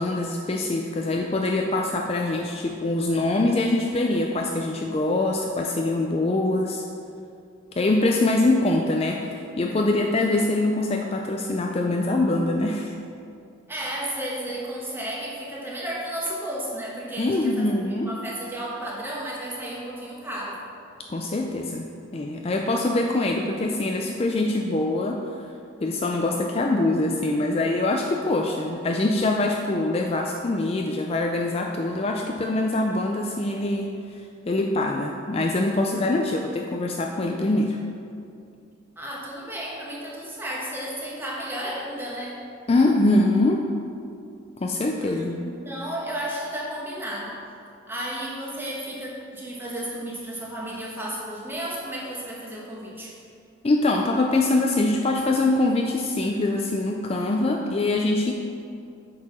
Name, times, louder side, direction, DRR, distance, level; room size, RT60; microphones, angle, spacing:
voice 1, 0.0-6.8 7.8-12.9 17.2-18.1 21.1-25.2 25.8-37.8 42.7-43.7 44.6-45.5 53.6-58.3, left 2 dB, 30° left, 2 dB, 0.4 m, -24 dB
voice 2, 13.7-17.7 18.0-20.6 39.0-42.4 45.0-47.4 47.9-53.1, right 1 dB, 10° right, -4 dB, 1.2 m, -33 dB
8.4 x 4.7 x 6.0 m, 2.5 s
head